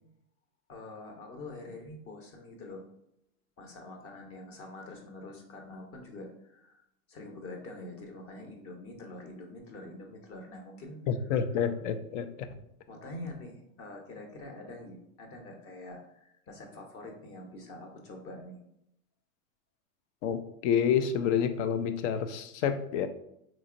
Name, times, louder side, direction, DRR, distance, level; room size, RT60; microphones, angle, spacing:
voice 1, 0.7-2.8 3.6-6.8 7.1-11.0 12.9-18.6, left 2 dB, 30° left, 2 dB, 0.8 m, -45 dB
voice 2, 11.1-12.3 20.2-23.1, left 7 dB, 55° left, 9 dB, 0.5 m, -28 dB
3.9 x 3.0 x 2.5 m, 0.77 s
hypercardioid pair, 115°, 43 cm